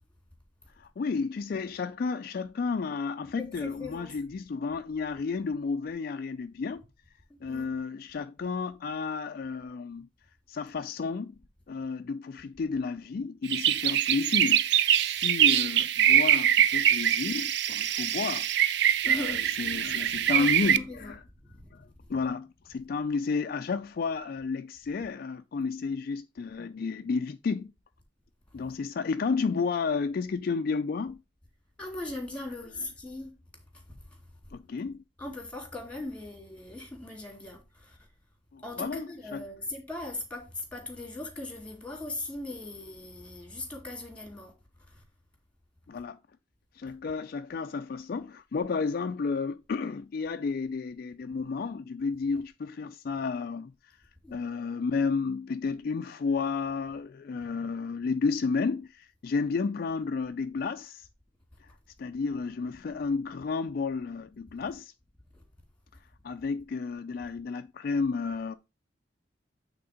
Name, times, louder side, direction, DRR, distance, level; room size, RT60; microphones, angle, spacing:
voice 1, 0.8-6.8 7.4-10.1 10.5-11.4 11.7-18.5 19.1-21.2 21.7-27.7 28.5-31.2 34.5-35.0 38.5-39.4 45.9-46.2 46.7-53.7 54.3-61.1 61.6-61.7 62.0-64.9 66.2-68.6, left 4 dB, 50° left, 0.3 m, -32 dB
voice 2, 3.4-4.2 7.5-7.8 19.0-19.5 20.2-21.1 21.5-21.7 22.0-22.1 31.8-33.3 33.9-34.0 35.2-38.1 38.6-44.5 44.9-45.0 54.2-54.3 65.3-65.4, left 2 dB, 5° left, 2.3 m, -39 dB
sound 1, 13.4-20.8, right 10 dB, 60° right, 0.4 m, -24 dB
8.6 x 3.7 x 4.9 m
head